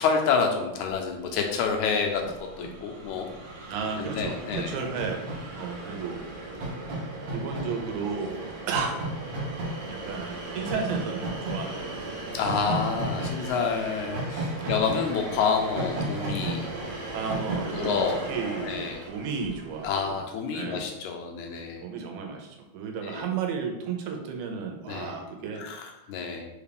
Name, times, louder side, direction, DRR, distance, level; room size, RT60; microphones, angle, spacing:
voice 1, 0.0-2.2 2.6-3.3 4.0-4.8 12.3-16.7 17.7-19.0 19.8-21.8 23.0-23.3 24.9-25.1 25.6-26.5, left 5 dB, 80° left, 2 dB, 2.0 m, -28 dB
Train, 1.2-1.3 1.5-19.9, right 2 dB, 65° right, 1.6 m, -35 dB
voice 2, 3.7-5.3 5.5-6.2 7.3-9.0 9.9-12.1 14.6-14.8 17.1-18.0 18.3-20.2 20.5-20.9 21.8-25.6, right 5 dB, 80° right, 3 dB, 2.1 m, -33 dB
4.9 x 2.4 x 3.4 m, 0.93 s
omnidirectional pair, 3.4 m